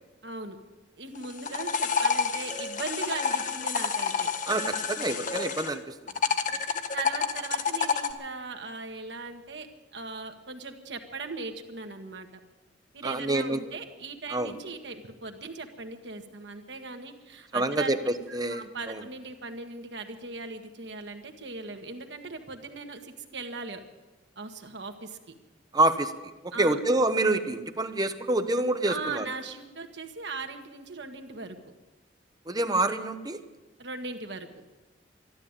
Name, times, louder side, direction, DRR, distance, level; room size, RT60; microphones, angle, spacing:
voice 1, 0.2-0.6 1.0-4.3 6.9-9.7 9.9-12.3 12.9-17.9 18.3-23.8 24.3-25.4 26.5-26.8 28.8-31.7 33.8-34.5, right 3 dB, 75° right, 5 dB, 1.6 m, -39 dB
sound 1, 1.2-5.7 6.1-8.1, left 5 dB, 45° left, 1.1 m, -29 dB
voice 2, 4.5-5.9 13.0-13.6 14.3-14.5 17.5-19.0 25.7-26.1 26.4-29.3 32.5-33.4, right 2 dB, 25° right, 9 dB, 0.9 m, -27 dB
12.5 x 12.5 x 8.9 m, 1.2 s
head